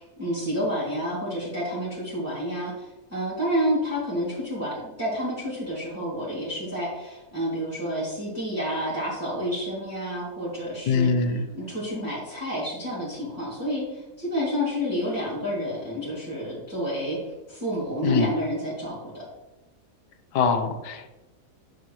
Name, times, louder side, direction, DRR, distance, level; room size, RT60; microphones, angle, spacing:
voice 1, 0.0-11.1 11.5-19.2, equal, 10° right, -9 dB, 2.6 m, -29 dB
voice 2, 10.9-11.5 18.0-18.3 20.3-21.1, left 5 dB, 85° left, 8 dB, 1.5 m, -23 dB
9.8 x 6.8 x 3.1 m, 1.0 s
omnidirectional pair, 1.8 m